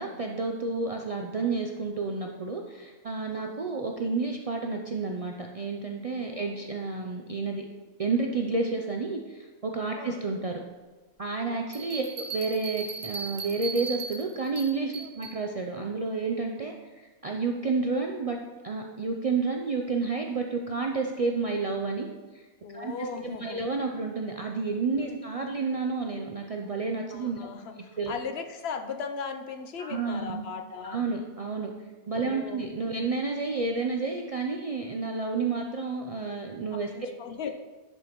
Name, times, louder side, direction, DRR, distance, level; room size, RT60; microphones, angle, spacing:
voice 1, 0.0-7.6 8.0-10.6 11.2-18.4 18.6-22.1 22.3-22.4 22.7-22.9 23.2-27.5 28.0-28.1 29.8-30.4 30.8-31.7 32.1-36.9, right 4 dB, 50° right, 2 dB, 0.4 m, -30 dB
voice 2, 6.1-6.7 10.0-10.2 11.4-12.1 15.0-15.1 22.6-23.6 25.0-25.2 27.1-31.0 32.1-32.6 32.9-33.1 36.7-37.5, left 5 dB, 70° left, 6 dB, 0.8 m, -38 dB
sound 1, 11.7-15.4, right 5 dB, 70° right, 1.4 m, -37 dB
10.5 x 5.3 x 3.0 m, 1.2 s
omnidirectional pair, 1.2 m